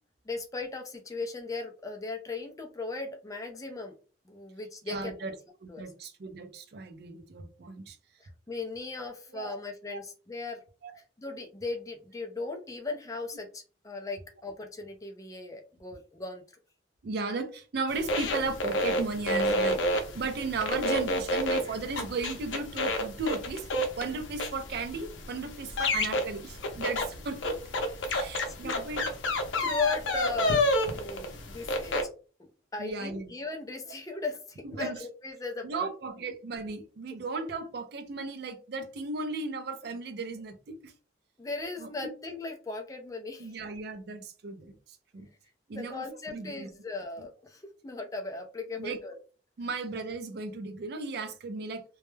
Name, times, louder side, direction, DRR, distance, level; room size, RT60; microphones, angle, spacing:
voice 1, 0.3-3.9 4.3-5.3 5.7-5.9 8.2-10.6 11.0-16.4 21.6-21.7 28.0-28.3 28.6-28.8 29.6-30.7 30.9-32.0 32.4-35.9 41.4-43.6 45.7-49.2, left 3 dB, 20° left, 0.4 m, -37 dB
voice 2, 4.9-8.0 9.3-9.6 9.9-10.0 10.8-10.9 17.0-19.8 20.1-23.6 24.0-27.6 28.1-29.1 32.8-33.3 34.8-35.0 35.6-40.9 41.8-42.1 43.4-45.3 45.7-46.7 48.8-49.0 49.6-51.8, right 3 dB, 55° right, 0.4 m, -36 dB
sound 1, 17.9-32.0, left 1 dB, 85° left, 0.5 m, -30 dB
2.2 x 2.0 x 3.1 m
head